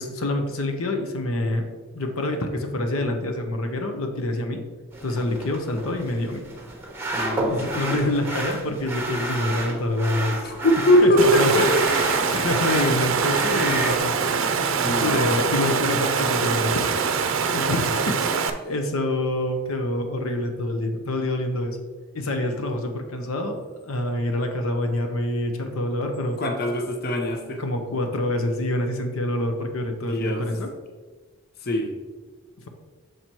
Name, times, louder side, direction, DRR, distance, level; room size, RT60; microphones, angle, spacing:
voice 1, 0.0-1.7 1.9-4.6 5.0-6.4 7.5-10.5 11.0-11.7 11.9-17.0 17.5-21.8 22.1-23.6 23.8-26.4 27.6-30.7 32.6-32.7, left 1 dB, 75° left, 5 dB, 0.7 m, -26 dB
sound 1, 4.9-14.0, right 2 dB, 10° right, 0.9 m, -30 dB
voice 2, 7.1-7.7 10.4-12.0 14.8-15.4 26.4-27.6 30.1-30.5 31.6-31.9, left 1 dB, 45° left, 3 dB, 0.7 m, -22 dB
Water, 11.2-18.5, right 5 dB, 65° right, 0.5 m, -24 dB
6.5 x 4.4 x 4.4 m, 1.4 s
head